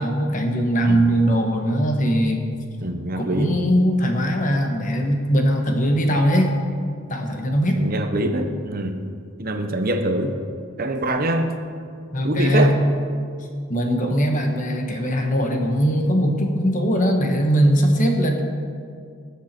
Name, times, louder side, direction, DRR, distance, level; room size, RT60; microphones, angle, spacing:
voice 1, 0.0-2.4 3.2-6.5 7.1-7.8 12.1-12.7 13.7-18.4, equal, 40° left, 3 dB, 1.4 m, -20 dB
voice 2, 2.8-3.5 7.8-9.0 9.4-10.4 10.8-11.5 12.2-12.7, right 1 dB, 45° right, 5 dB, 0.9 m, -24 dB
20.0 x 7.4 x 4.4 m, 2.2 s
head